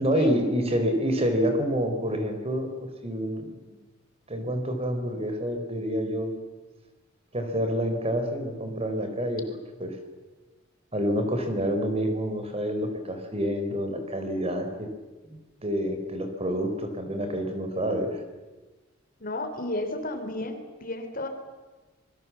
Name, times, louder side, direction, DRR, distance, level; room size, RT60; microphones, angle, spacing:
voice 1, 0.0-2.7 3.0-3.8 4.3-6.3 7.3-9.9 10.9-14.9 15.6-18.2, equal, 30° right, 6 dB, 4.0 m, -28 dB
voice 2, 19.2-21.3, left 2 dB, 45° left, 7 dB, 3.5 m, -33 dB
27.0 x 23.0 x 7.4 m, 1.2 s
head